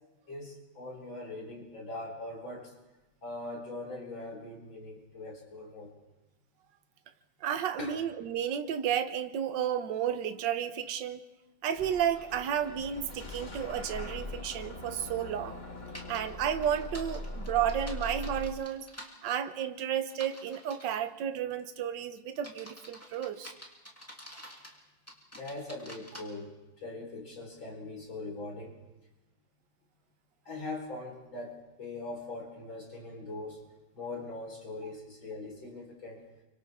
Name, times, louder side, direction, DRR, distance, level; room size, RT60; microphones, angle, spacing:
voice 1, 0.3-2.7 3.2-5.9 7.8-8.0 25.3-28.8 30.5-33.6 33.9-36.2, left 2 dB, 75° left, 0 dB, 5.2 m, -41 dB
voice 2, 7.4-11.2 11.6-15.6 16.1-18.9 19.2-23.5, right 9 dB, 70° right, 9 dB, 1.6 m, -32 dB
Bus / Engine starting, 11.7-18.5, left 1 dB, 25° left, 1.4 m, -41 dB
sound 1, 15.9-16.2 16.6-19.1 20.1-20.9 21.5-21.8 22.3-24.8 25.1-26.2, equal, 5° left, 2.7 m, -48 dB
29.5 x 25.0 x 3.6 m, 1.0 s
omnidirectional pair, 2.1 m